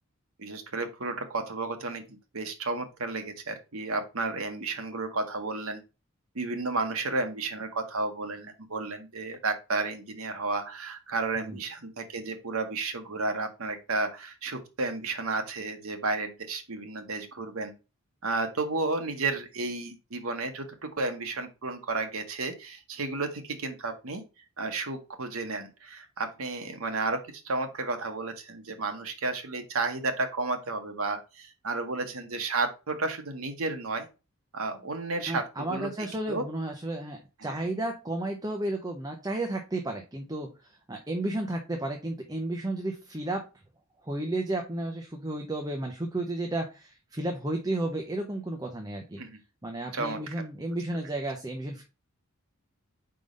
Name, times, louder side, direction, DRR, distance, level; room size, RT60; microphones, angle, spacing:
voice 1, 0.4-5.8 6.3-17.7 18.2-24.2 24.6-27.2 27.4-34.1 34.5-35.9 36.3-36.4 37.4-37.6 49.2-49.4 49.9-50.4, right 3 dB, 70° right, 6 dB, 1.2 m, -32 dB
voice 2, 35.3-43.5 44.0-49.2 49.6-51.8, right 1 dB, 15° right, 3 dB, 0.7 m, -33 dB
4.9 x 3.8 x 5.2 m, 0.30 s
head